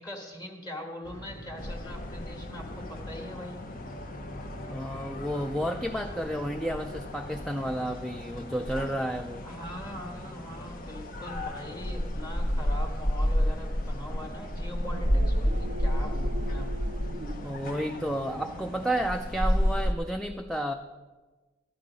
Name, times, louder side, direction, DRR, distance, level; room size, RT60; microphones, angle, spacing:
voice 1, 0.0-3.6 9.4-17.0, left 1 dB, 20° left, 2 dB, 1.5 m, -42 dB
sound 1, 1.0-17.6, equal, 85° left, 1.9 m, -49 dB
sound 2, 1.6-19.9, equal, 45° left, 1.0 m, -32 dB
voice 2, 4.7-9.5 17.4-20.7, equal, ahead, 4 dB, 0.4 m, -31 dB
sound 3, 14.6-19.2, right 1 dB, 55° right, 0.5 m, -42 dB
13.0 x 10.0 x 5.1 m, 1.3 s
head